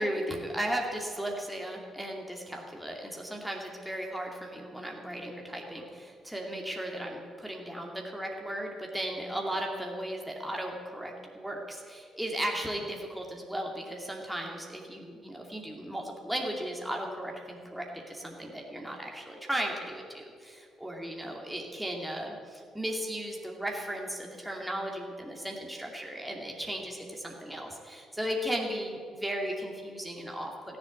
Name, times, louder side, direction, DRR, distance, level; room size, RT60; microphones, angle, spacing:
voice 1, 0.0-30.8, right 1 dB, 5° right, 0 dB, 2.5 m, -36 dB
15.0 x 7.6 x 9.6 m, 2.1 s
figure-of-eight pair, 45°, 0 cm